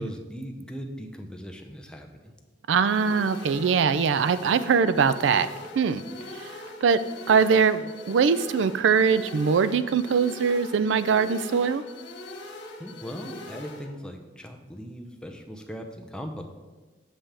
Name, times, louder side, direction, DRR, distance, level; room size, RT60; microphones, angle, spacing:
voice 1, 0.0-2.3 12.8-16.4, equal, 5° left, 2 dB, 0.6 m, -39 dB
voice 2, 2.7-5.5 5.7-6.0 6.3-6.5 6.8-7.0 7.3-11.8, right 6 dB, 75° right, 14 dB, 0.4 m, -22 dB
sound 1, 2.9-13.9, left 2 dB, 75° left, 1.5 m, -42 dB
7.5 x 7.2 x 3.4 m, 1.3 s
head